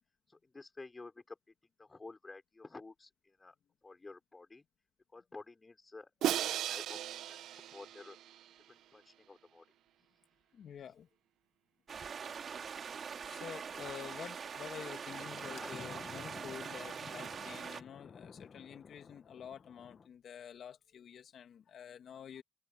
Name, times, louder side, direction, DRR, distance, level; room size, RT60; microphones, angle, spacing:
voice 1, 0.3-1.4 1.8-3.5 3.8-4.6 5.1-6.1 6.5-7.0 7.3-8.2 8.7-9.7 15.4-15.7, left 3 dB, 25° left, 5.8 m, -51 dB
Crash cymbal, 6.2-8.4, right 12 dB, 80° right, 1.1 m, -36 dB
voice 2, 10.5-11.1 13.2-22.4, left 8 dB, 65° left, 2.2 m, -49 dB
sound 1, 11.9-17.8, right 6 dB, 50° right, 3.0 m, -43 dB
Thunder, 14.8-20.1, left 5 dB, 45° left, 1.8 m, -53 dB
cardioid pair, 90°, 0 cm